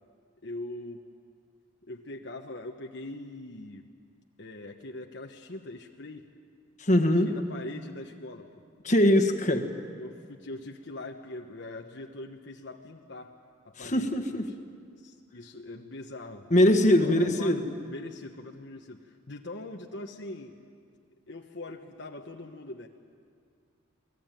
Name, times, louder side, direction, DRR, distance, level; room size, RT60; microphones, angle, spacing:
voice 1, 0.4-1.1 1.8-3.8 4.4-6.2 7.2-8.5 10.0-13.4 13.6-14.5 15.0-16.5 16.7-20.6 21.3-22.9, left 2 dB, 60° left, 2 dB, 1.2 m, -42 dB
voice 2, 6.8-7.3 8.8-9.7 13.8-14.4 16.5-17.7, left 1 dB, 35° left, 5 dB, 1.7 m, -22 dB
28.5 x 20.0 x 9.1 m, 2.1 s
head